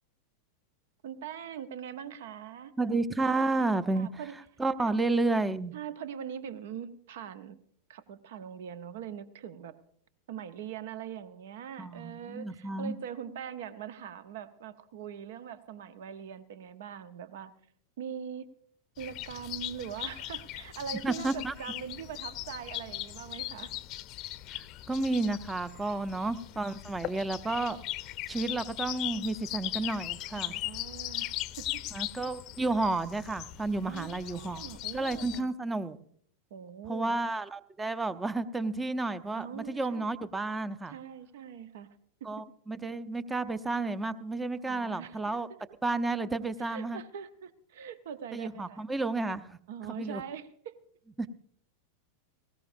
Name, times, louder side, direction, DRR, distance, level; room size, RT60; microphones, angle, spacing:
voice 1, 1.0-2.7 3.9-4.3 4.8-4.9 5.7-7.6 7.9-9.8 10.3-17.5 18.0-18.5 19.0-23.7 30.3-31.8 33.8-35.5 36.5-37.2 39.3-40.1 40.9-42.0 44.6-45.6 46.6-48.8 49.7-50.8, right 8 dB, 55° right, 13 dB, 1.0 m, -42 dB
voice 2, 2.8-4.1 4.6-5.7 11.8-12.9 21.0-21.5 24.5-27.8 28.3-30.5 31.9-34.6 34.9-36.0 36.9-41.0 42.2-45.5 45.8-47.0 48.3-49.6 50.0-50.2 51.2-51.3, right 2 dB, 10° right, 15 dB, 0.7 m, -31 dB
sound 1, 19.0-35.4, left 16 dB, 40° left, 0.7 m, -39 dB
19.5 x 17.5 x 2.7 m, 0.62 s
figure-of-eight pair, 90°, 0 cm